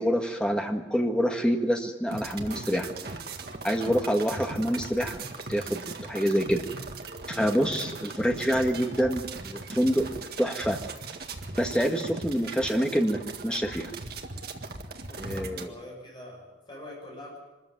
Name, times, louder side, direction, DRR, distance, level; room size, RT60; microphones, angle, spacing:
voice 1, 0.0-2.9 3.6-5.2 5.5-6.6 7.3-10.1 10.4-10.8 11.6-13.9 15.2-15.7, equal, 5° left, 3 dB, 1.7 m, -26 dB
sound 1, 2.1-15.7, right 3 dB, 50° right, 1.7 m, -39 dB
voice 2, 15.0-17.4, left 1 dB, 25° left, -2 dB, 6.4 m, -44 dB
24.5 x 14.0 x 9.4 m, 1.1 s
head